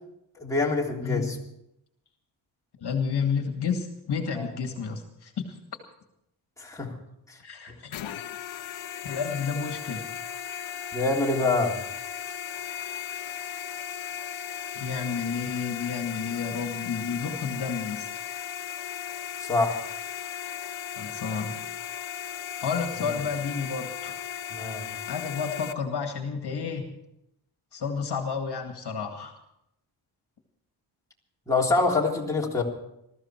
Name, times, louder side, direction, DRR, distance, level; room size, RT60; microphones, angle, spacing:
voice 1, 0.4-1.4 4.4-4.5 6.6-7.0 7.3-7.4 10.9-11.8 19.4-19.8 23.0-23.1 24.5-24.9 31.5-32.6, left 3 dB, 5° left, -3 dB, 3.5 m, -25 dB
voice 2, 1.0-1.3 2.8-5.6 7.4-8.0 9.0-10.0 14.8-18.1 21.0-21.6 22.6-24.2 25.1-26.9 27.7-29.4, left 6 dB, 55° left, 5 dB, 2.1 m, -31 dB
sound 1, 7.9-25.7, left 9 dB, 75° left, 1.1 m, -36 dB
20.5 x 14.0 x 4.6 m, 0.79 s
cardioid pair, 125°, 48 cm